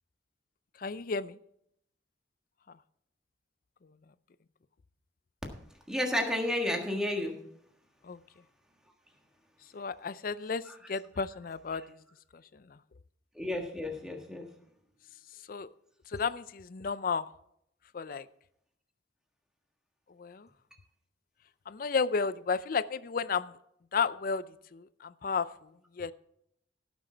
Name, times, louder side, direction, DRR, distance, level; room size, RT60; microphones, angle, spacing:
voice 1, 0.8-1.4 8.1-8.2 9.7-10.6 10.9-11.8 15.5-15.7 16.1-17.2 17.9-18.3 20.2-20.5 21.7-23.5 23.9-24.4 24.7-25.5 26.0-26.1, left 5 dB, 50° left, 15 dB, 0.4 m, -32 dB
voice 2, 5.9-7.4 10.6-10.9 11.7-11.8 13.3-14.5, left 1 dB, 5° right, 1 dB, 1.6 m, -32 dB
16.5 x 6.2 x 4.4 m, 0.72 s
head